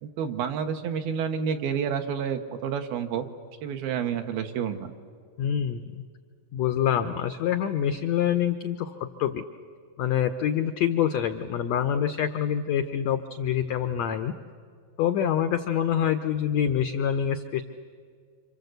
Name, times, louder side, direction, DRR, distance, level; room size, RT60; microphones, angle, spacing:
voice 1, 0.0-3.3 3.6-4.9, right 7 dB, 90° right, 6 dB, 3.2 m, -29 dB
voice 2, 5.4-6.0 6.5-8.9 9.2-9.4 10.0-14.3 15.0-17.6, left 9 dB, 90° left, 9 dB, 1.5 m, -26 dB
27.5 x 26.5 x 8.0 m, 2.1 s
omnidirectional pair, 4.2 m